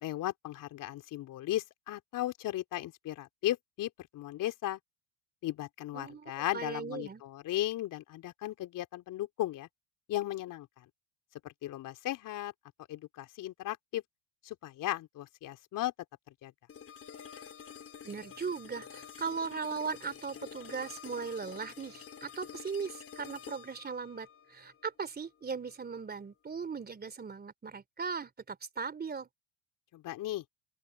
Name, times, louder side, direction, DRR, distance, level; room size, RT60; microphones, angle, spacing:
voice 1, 0.0-4.8 5.4-9.7 10.1-10.9 11.4-12.5 12.9-14.0 14.4-15.9 16.4-16.5 29.9-30.4, left 14 dB, 50° left, 3.7 m, -36 dB
voice 2, 5.9-7.2 18.0-29.3, right 5 dB, 25° right, 3.4 m, -38 dB
sound 1, 16.7-25.7, left 8 dB, 35° left, 4.7 m, -49 dB
open air
hypercardioid pair, 85°, 40 cm